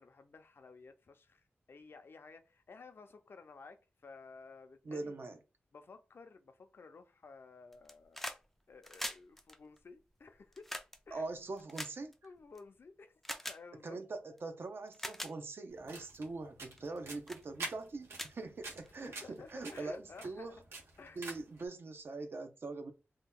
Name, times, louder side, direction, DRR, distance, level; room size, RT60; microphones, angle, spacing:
voice 1, 0.0-5.2 5.7-8.2 8.7-10.7 11.1-11.2 12.2-14.0 19.0-20.5 21.0-21.2, left 4 dB, 65° left, 0.5 m, -54 dB
voice 2, 4.8-5.4 11.1-12.2 13.8-20.6 21.2-22.9, right 3 dB, 60° right, 0.6 m, -43 dB
sound 1, 7.7-8.4 8.7-12.6 13.2-13.6 14.4-14.5 14.9-15.3 15.9-16.2 16.7-17.0 17.3-17.4 17.8-17.9 18.1-19.1 20.2-20.3, left 1 dB, 5° left, 0.3 m, -43 dB
sound 2, 15.7-21.6, right 2 dB, 85° right, 1.0 m, -48 dB
2.8 x 2.2 x 3.5 m
wide cardioid pair, 115°, 4 cm